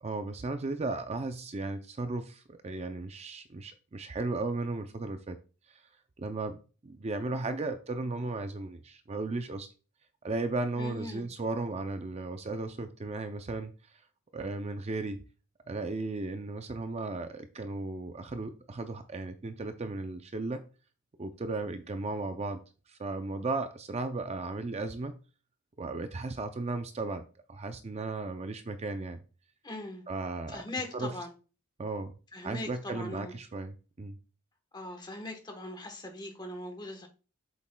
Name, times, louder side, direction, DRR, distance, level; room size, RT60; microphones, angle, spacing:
voice 1, 0.0-5.4 5.7-5.8 6.2-6.6 6.8-9.7 10.2-14.0 14.3-15.2 15.7-20.6 21.2-22.6 22.9-25.2 25.8-27.2 27.5-29.2 30.1-30.6 30.9-31.1 31.8-32.1 32.4-34.2, right 3 dB, 30° right, 0.4 m, -35 dB
voice 2, 10.7-11.2 29.6-30.0 30.5-31.3 32.3-33.3 34.7-37.1, left 2 dB, 20° left, 1.1 m, -40 dB
8.0 x 7.3 x 2.2 m
head